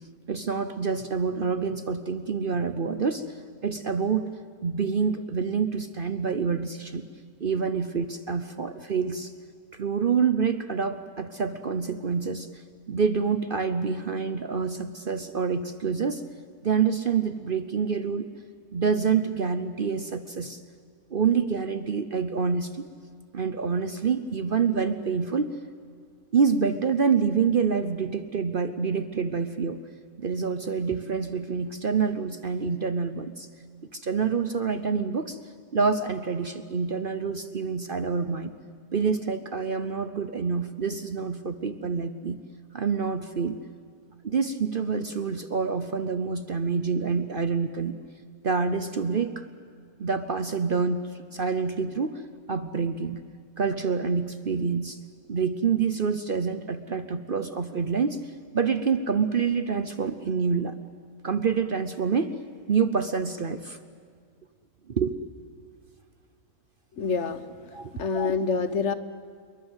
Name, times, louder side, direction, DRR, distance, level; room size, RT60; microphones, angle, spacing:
voice 1, 0.3-3.3 3.6-4.4 4.6-7.0 7.4-9.3 9.7-12.5 12.9-16.2 16.6-18.3 18.7-20.6 21.1-22.8 23.3-25.5 26.3-29.8 30.2-33.5 33.9-35.4 35.7-38.5 38.9-42.4 42.7-43.6 44.2-47.9 48.4-49.5 50.0-51.0 51.3-52.2 52.5-53.2 53.6-55.0 55.3-58.2 58.5-60.7 61.2-62.3 62.7-63.8 64.9-65.2 67.7-67.9, right 5 dB, 45° right, 11 dB, 0.8 m, -27 dB
voice 2, 67.0-67.5 67.9-68.9, left 5 dB, 55° left, 13 dB, 1.2 m, -26 dB
28.0 x 22.5 x 8.1 m, 2.1 s
omnidirectional pair, 1.6 m